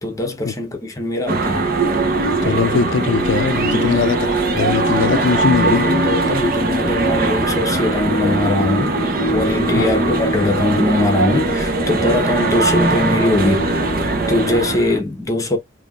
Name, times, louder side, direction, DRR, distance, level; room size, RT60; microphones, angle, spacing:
voice 1, 0.0-1.7 3.7-4.0 5.3-9.0 9.3-13.7 14.3-15.6, left 2 dB, 20° left, 1.2 m, -21 dB
sound 1, 1.3-15.0, right 2 dB, 50° right, 1.2 m, -20 dB
voice 2, 2.4-5.9 9.8-9.9, left 5 dB, 80° left, 0.4 m, -20 dB
5.2 x 2.9 x 2.5 m
head